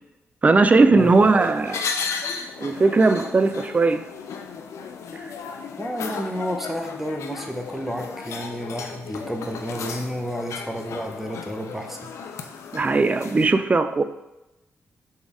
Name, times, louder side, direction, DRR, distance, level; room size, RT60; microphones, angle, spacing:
voice 1, 0.4-1.8 2.6-4.0 12.7-14.0, right 3 dB, 30° right, 10 dB, 0.3 m, -18 dB
sound 1, 1.0-13.5, left 5 dB, 85° left, 0.4 m, -35 dB
voice 2, 5.8-12.0, equal, 5° right, 3 dB, 0.7 m, -31 dB
4.2 x 3.4 x 3.5 m, 0.96 s
cardioid pair, 75°, 5 cm